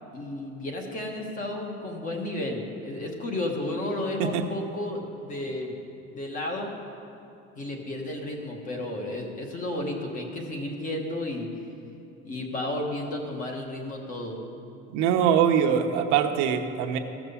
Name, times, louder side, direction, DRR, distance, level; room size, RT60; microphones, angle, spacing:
voice 1, 0.1-5.8 6.1-6.7 7.6-11.5 12.2-14.4, left 1 dB, 25° left, 2 dB, 1.3 m, -32 dB
voice 2, 14.9-17.0, right 8 dB, 75° right, 4 dB, 0.9 m, -23 dB
14.5 x 6.1 x 7.0 m, 2.7 s
cardioid pair, 170°, 29 cm